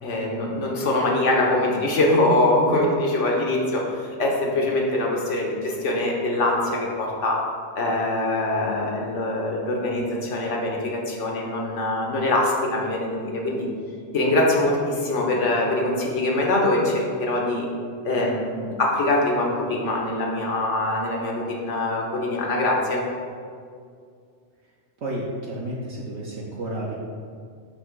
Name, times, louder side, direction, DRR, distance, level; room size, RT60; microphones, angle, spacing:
voice 1, 0.0-3.9 4.2-7.4 7.7-13.7 14.1-17.7 18.0-23.0, left 2 dB, 75° left, -1 dB, 1.4 m, -23 dB
voice 2, 25.0-27.0, right 1 dB, 65° right, -5 dB, 1.1 m, -31 dB
8.3 x 3.0 x 6.0 m, 2.2 s
omnidirectional pair, 1.2 m